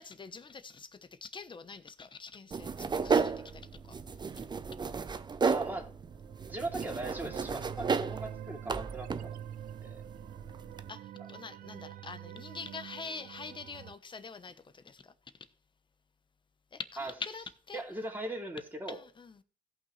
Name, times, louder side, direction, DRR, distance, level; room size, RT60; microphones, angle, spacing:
voice 1, 0.0-4.0 10.9-15.1 16.7-17.8 18.9-19.4, left 4 dB, 30° left, 1.0 m, -45 dB
sound 1, 2.5-10.9, right 5 dB, 25° right, 0.6 m, -34 dB
voice 2, 5.4-5.9 6.5-9.4 9.8-10.0 17.0-17.1 17.7-19.0, right 2 dB, 10° right, 2.9 m, -39 dB
sound 2, 6.0-13.9, right 11 dB, 65° right, 0.4 m, -46 dB
16.5 x 5.8 x 3.3 m
cardioid pair, 80°, 16 cm